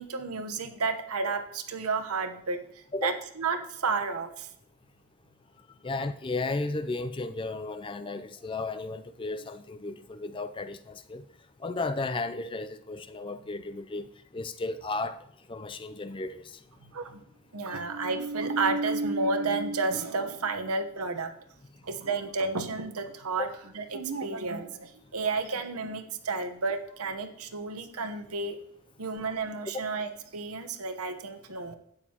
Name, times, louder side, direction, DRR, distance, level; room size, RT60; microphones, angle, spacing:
voice 1, 0.0-2.6 3.0-4.5 16.8-17.2 17.5-21.3 21.8-23.5 23.7-28.6 29.0-31.8, right 3 dB, 80° right, 7 dB, 1.0 m, -31 dB
voice 2, 5.8-11.2 11.6-14.1 14.3-15.2 15.5-16.5 23.4-23.5, left 3 dB, 20° left, 11 dB, 0.4 m, -34 dB
12.5 x 9.0 x 2.9 m, 0.72 s
head